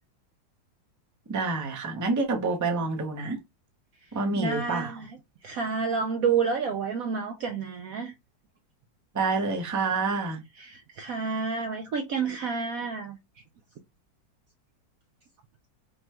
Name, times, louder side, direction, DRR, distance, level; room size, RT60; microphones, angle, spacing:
voice 1, 1.3-3.4 4.1-5.0 9.1-10.4, right 3 dB, 20° right, 0.5 m, -28 dB
voice 2, 4.4-5.2 5.4-8.1 10.6-13.2, right 5 dB, 70° right, 0.8 m, -29 dB
5.2 x 2.2 x 2.9 m
omnidirectional pair, 2.0 m